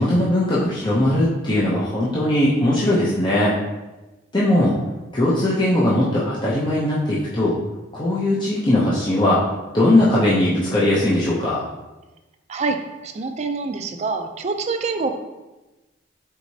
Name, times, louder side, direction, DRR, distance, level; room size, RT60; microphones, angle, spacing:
voice 1, 0.0-3.5 4.3-4.7 5.1-7.6 7.9-9.4 9.7-11.6, left 1 dB, 25° left, -8 dB, 0.6 m, -19 dB
voice 2, 12.5-15.1, right 4 dB, 35° right, 6 dB, 0.4 m, -26 dB
4.6 x 4.0 x 2.7 m, 1.1 s
head